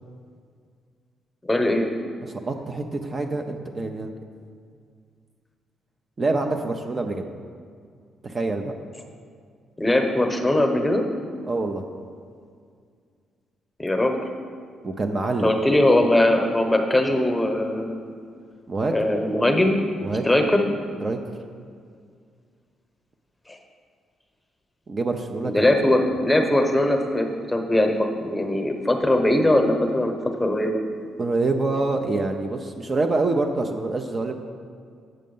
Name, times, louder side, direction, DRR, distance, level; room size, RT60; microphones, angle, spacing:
voice 1, 1.5-1.9 9.8-11.0 13.8-14.1 15.4-18.0 18.9-19.8 20.2-20.6 23.5-23.6 25.4-30.8, left 1 dB, 10° left, 4 dB, 1.0 m, -20 dB
voice 2, 2.2-4.1 6.2-7.2 8.2-8.7 11.5-11.8 14.8-15.6 18.7-19.0 20.0-20.3 21.0-21.2 24.9-26.0 31.2-34.3, right 3 dB, 35° right, 4 dB, 0.6 m, -26 dB
7.7 x 6.4 x 5.4 m, 2.2 s
cardioid pair, 90°, 0 cm